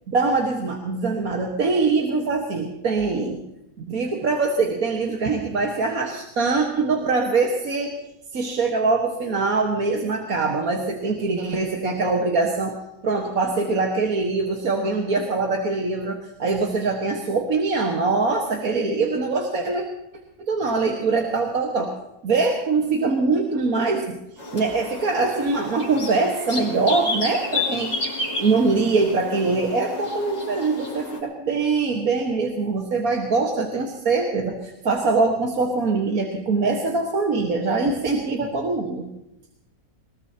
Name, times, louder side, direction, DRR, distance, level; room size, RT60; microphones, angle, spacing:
voice 1, 0.1-3.4 3.9-7.9 8.3-12.8 13.0-19.8 20.4-21.9 22.2-24.2 24.5-28.0 28.3-39.1, right 3 dB, 65° right, 0 dB, 2.0 m, -23 dB
sound 1, 24.4-31.2, left 3 dB, 85° left, 5.2 m, -31 dB
21.5 x 21.0 x 2.9 m, 0.85 s
omnidirectional pair, 1.7 m